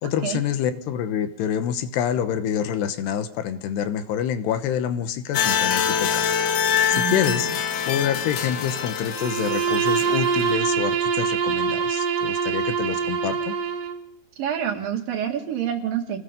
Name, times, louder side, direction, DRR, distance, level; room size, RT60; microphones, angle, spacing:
voice 1, 0.0-6.3 6.9-7.5 7.9-13.6, left 9 dB, 80° left, 10 dB, 3.2 m, -27 dB
sound 1, 5.3-10.6, left 8 dB, 60° left, 2.7 m, -25 dB
voice 2, 6.9-7.4 14.4-16.2, right 9 dB, 60° right, 3 dB, 3.4 m, -27 dB
Bowed string instrument, 9.1-14.0, right 6 dB, 80° right, 3.9 m, -24 dB
27.5 x 19.5 x 5.3 m, 0.65 s
omnidirectional pair, 4.8 m